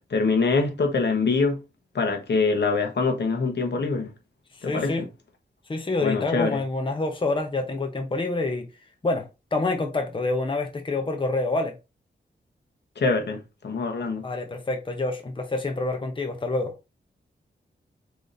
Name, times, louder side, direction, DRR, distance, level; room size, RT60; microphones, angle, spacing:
voice 1, 0.1-1.6 1.9-4.1 4.6-5.1 6.0-6.6 13.0-14.2, left 4 dB, 65° left, 1.2 m, -24 dB
voice 2, 4.6-5.0 5.7-8.7 9.0-9.3 9.5-11.8 14.2-16.7, left 2 dB, 25° left, 0.8 m, -27 dB
4.9 x 4.0 x 2.6 m
wide cardioid pair, 90°, 19 cm